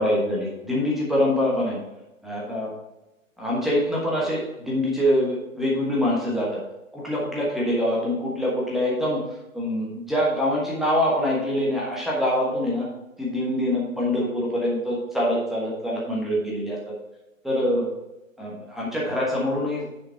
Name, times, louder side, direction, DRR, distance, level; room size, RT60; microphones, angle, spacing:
voice 1, 0.0-1.8 2.2-2.7 3.4-6.6 6.9-9.2 9.5-12.9 13.2-16.8 17.4-17.9 18.4-19.9, left 1 dB, ahead, -5 dB, 1.2 m, -24 dB
9.7 x 6.0 x 4.4 m, 0.98 s
figure-of-eight pair, 135°, 41 cm